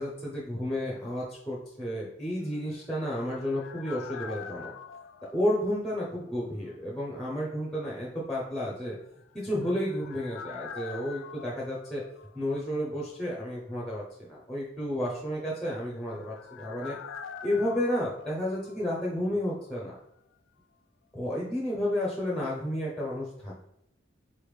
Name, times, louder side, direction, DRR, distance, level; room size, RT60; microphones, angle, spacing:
voice 1, 0.0-4.7 5.3-8.9 9.3-12.0 12.3-17.0 17.4-20.0 21.1-23.6, equal, ahead, -4 dB, 0.6 m, -31 dB
sound 1, 2.6-6.4 6.7-6.8 9.2-12.9 13.2-13.3 15.5-19.4 19.6-19.7, left 6 dB, 75° left, 0.3 m, -45 dB
4.3 x 3.5 x 3.1 m, 0.78 s
head